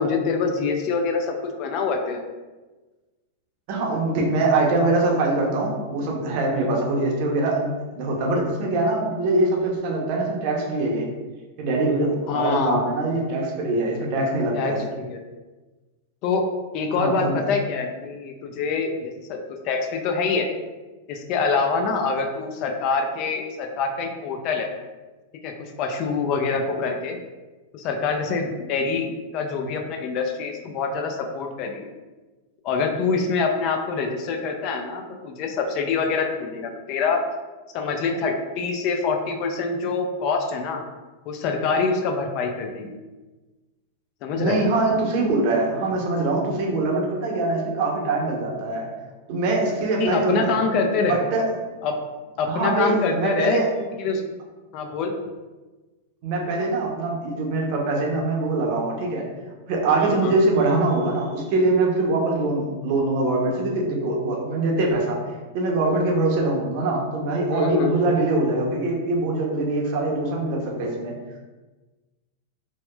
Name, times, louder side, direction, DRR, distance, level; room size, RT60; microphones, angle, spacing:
voice 1, 0.0-2.2 6.6-6.8 12.3-12.8 14.5-15.2 16.2-16.4 16.7-19.4 19.6-20.5 21.1-24.7 25.4-27.2 27.7-31.9 32.6-37.2 37.7-40.8 41.3-43.0 44.2-44.6 50.0-51.2 51.8-52.0 52.4-54.4 54.7-55.1 60.0-60.4 67.5-67.9, left 4 dB, 45° left, 3 dB, 0.3 m, -25 dB
voice 2, 3.7-11.1 11.6-14.8 16.9-17.4 44.3-48.9 49.3-50.6 51.0-51.4 52.5-53.7 56.2-59.3 59.7-65.2 65.5-71.1, right 2 dB, 55° right, -1 dB, 0.6 m, -23 dB
2.8 x 2.1 x 2.2 m, 1.2 s
hypercardioid pair, 110°, 0 cm